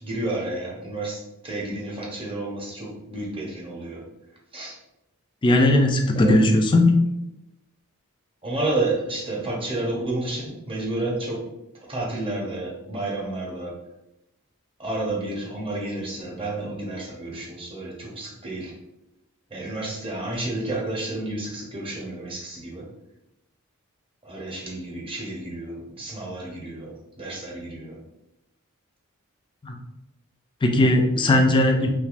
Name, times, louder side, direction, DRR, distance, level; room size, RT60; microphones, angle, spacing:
voice 1, 0.0-4.0 4.5-4.8 6.2-6.3 8.4-11.4 11.9-13.7 14.8-18.7 19.5-22.8 24.2-28.0, right 2 dB, 25° right, -3 dB, 0.7 m, -30 dB
voice 2, 5.4-7.0 29.6-29.7 30.6-31.9, left 1 dB, 20° left, 3 dB, 0.3 m, -18 dB
3.3 x 3.1 x 2.4 m, 0.91 s
head